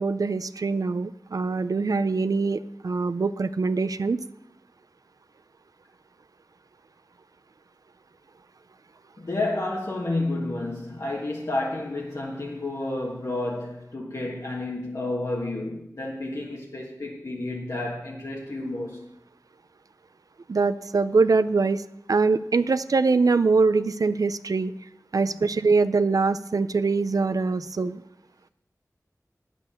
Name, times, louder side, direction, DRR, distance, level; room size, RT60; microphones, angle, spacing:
voice 1, 0.0-4.2 20.5-21.8 22.1-24.7 25.1-28.0, right 4 dB, 75° right, 0.4 m, -23 dB
voice 2, 9.2-19.0, left 2 dB, 60° left, 1.6 m, -30 dB
9.2 x 8.3 x 6.9 m
wide cardioid pair, 60°, 6 cm